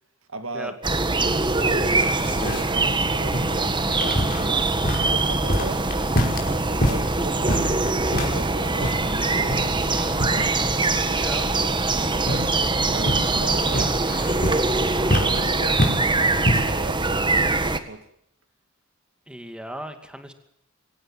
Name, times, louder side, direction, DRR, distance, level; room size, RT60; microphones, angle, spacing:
voice 1, 0.3-0.8 1.2-2.0 2.7-5.8 6.5-10.6 11.0-11.7 12.0-12.5 12.9-13.9 14.8-18.1, right 2 dB, 75° right, 2.2 m, -37 dB
sound 1, 0.8-17.8, right 3 dB, 25° right, 1.6 m, -23 dB
sound 2, 1.7-16.9, left 1 dB, 45° left, 5.3 m, -29 dB
voice 2, 11.1-11.4 19.3-20.3, equal, 5° right, 2.4 m, -37 dB
23.5 x 17.5 x 7.4 m
head